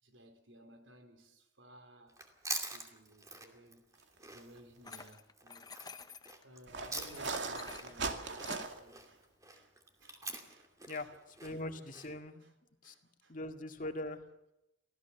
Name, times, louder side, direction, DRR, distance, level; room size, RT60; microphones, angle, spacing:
voice 1, 0.0-2.2 2.5-5.7 6.4-9.3 9.5-9.7 10.0-11.2 11.5-11.6 12.0-12.5 12.8-13.4, equal, 85° right, 3.9 m, -58 dB
Chewing mastication, 2.1-7.4 7.7-12.1, right 3 dB, 20° right, 2.5 m, -45 dB
sound 1, 4.4-4.6 5.0-5.1 6.7-9.0, right 4 dB, 70° right, 2.3 m, -39 dB
sound 2, 4.8-6.4 6.9-8.7, left 4 dB, 20° left, 0.8 m, -50 dB
voice 2, 11.4-12.4 12.8-12.9 13.3-14.2, left 2 dB, 45° left, 2.0 m, -41 dB
25.0 x 16.0 x 7.2 m
head